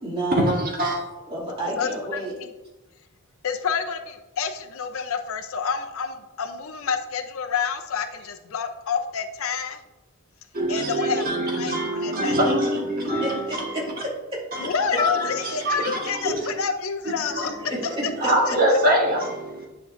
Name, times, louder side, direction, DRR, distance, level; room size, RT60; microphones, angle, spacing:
voice 1, 0.0-0.7 1.3-2.3 13.0-14.4 17.6-18.3, right 1 dB, 25° right, -5 dB, 2.5 m, -30 dB
voice 2, 1.8-2.5 3.4-9.8 10.7-12.5 14.6-17.5 18.2-18.6, left 6 dB, 70° left, 7 dB, 0.6 m, -29 dB
voice 3, 10.5-13.3 14.5-14.6 15.0-15.1 15.6-16.0 16.2-16.5 17.4-17.5 18.2-19.7, right 1 dB, 45° right, -1 dB, 1.5 m, -23 dB
9.8 x 5.5 x 2.6 m, 1.1 s
head